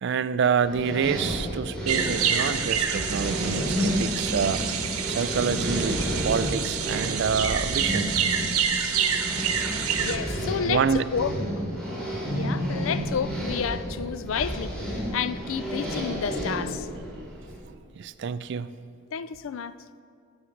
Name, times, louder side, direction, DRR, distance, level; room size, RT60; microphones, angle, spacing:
voice 1, 0.0-4.6 5.1-8.1 10.7-11.1 18.0-18.8, right 6 dB, 55° right, 0.3 m, -27 dB
sound 1, 0.6-17.6, equal, 5° left, 2.9 m, -31 dB
sound 2, 1.9-10.2, right 7 dB, 85° right, 0.9 m, -28 dB
voice 2, 10.0-10.9 11.1-11.3 12.3-16.9 19.1-19.7, left 7 dB, 65° left, 0.3 m, -30 dB
10.0 x 9.8 x 4.5 m
head